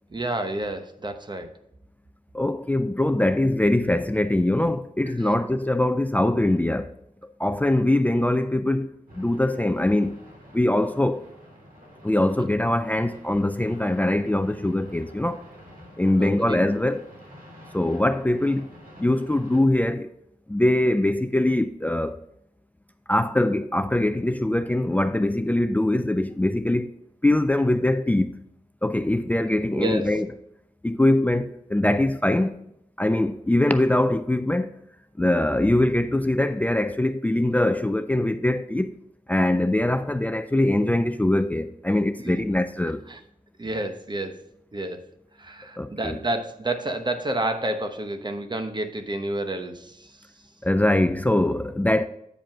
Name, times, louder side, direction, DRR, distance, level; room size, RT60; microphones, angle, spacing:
voice 1, 0.1-1.5 16.2-16.6 29.7-30.1 42.2-42.3 43.1-43.2 43.6-44.4 44.7-45.0 45.4-50.1, right 1 dB, 30° right, 1.0 m, -29 dB
voice 2, 2.3-6.9 7.4-10.2 10.5-11.3 12.0-15.4 16.0-17.0 17.7-18.7 19.0-20.1 20.5-22.2 23.1-26.9 27.2-28.3 28.8-30.3 30.8-32.6 33.0-34.7 35.2-38.9 39.3-43.0 45.8-46.2 50.6-52.1, left 1 dB, 10° left, 0.4 m, -22 dB
sound 1, 9.1-19.6, equal, 80° right, 3.1 m, -48 dB
9.0 x 5.1 x 4.7 m
wide cardioid pair, 110°, 14 cm